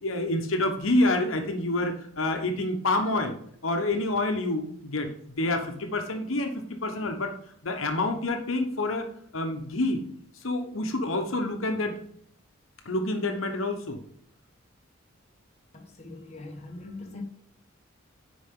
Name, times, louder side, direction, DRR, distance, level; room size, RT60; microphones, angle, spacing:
voice 1, 0.0-3.3 3.6-5.1 5.4-7.3 7.6-9.0 9.3-10.0 10.4-11.9 12.8-14.0, left 2 dB, 75° left, 1.1 m, -27 dB
voice 2, 15.7-17.2, left 2 dB, 35° left, 1.3 m, -42 dB
10.5 x 4.8 x 3.8 m
head